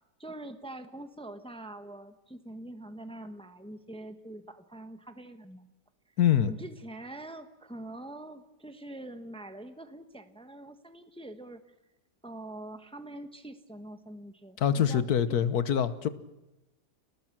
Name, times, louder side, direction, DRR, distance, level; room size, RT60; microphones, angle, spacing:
voice 1, 0.2-5.7 6.5-11.6 12.2-15.5, right 1 dB, 5° left, 8 dB, 1.1 m, -44 dB
voice 2, 6.2-6.5 14.6-16.1, left 9 dB, 70° left, 13 dB, 1.5 m, -25 dB
29.0 x 19.0 x 6.0 m, 0.99 s
omnidirectional pair, 1.7 m